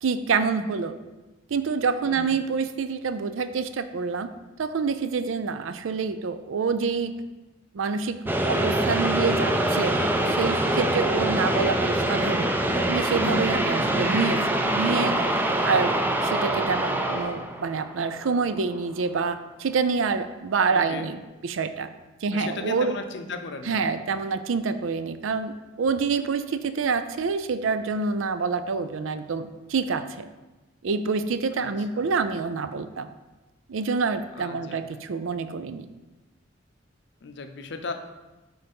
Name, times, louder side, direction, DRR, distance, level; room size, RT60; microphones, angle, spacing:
voice 1, 0.0-1.0 1.5-4.3 4.6-7.1 7.7-8.2 8.4-10.0 10.3-12.5 12.9-15.1 15.6-15.9 16.2-21.9 22.2-23.0 23.7-30.3 30.8-33.1 33.7-35.9, right 5 dB, 75° right, 11 dB, 0.4 m, -27 dB
voice 2, 2.0-2.4 10.0-10.3 20.7-21.1 22.3-23.8 31.6-32.1 34.3-34.8 37.2-37.9, left 4 dB, 55° left, 7 dB, 0.6 m, -36 dB
sound 1, 8.3-18.5, right 1 dB, 10° right, 0.4 m, -24 dB
6.6 x 4.0 x 5.3 m, 1.1 s
head